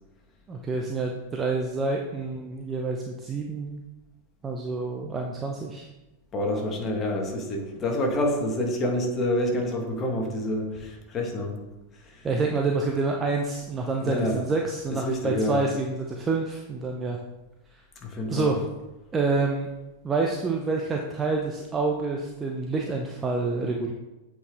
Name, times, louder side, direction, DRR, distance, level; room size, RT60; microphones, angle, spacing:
voice 1, 0.5-3.8 4.4-5.9 12.2-17.2 18.3-18.6 19.1-19.7 20.0-23.9, right 3 dB, 20° right, 1 dB, 0.7 m, -27 dB
voice 2, 6.3-11.6 12.0-12.3 14.0-14.4 14.9-15.6 18.0-18.6, left 1 dB, 25° left, 1 dB, 1.6 m, -27 dB
8.0 x 4.8 x 3.6 m, 1.0 s
figure-of-eight pair, 90°, 0 cm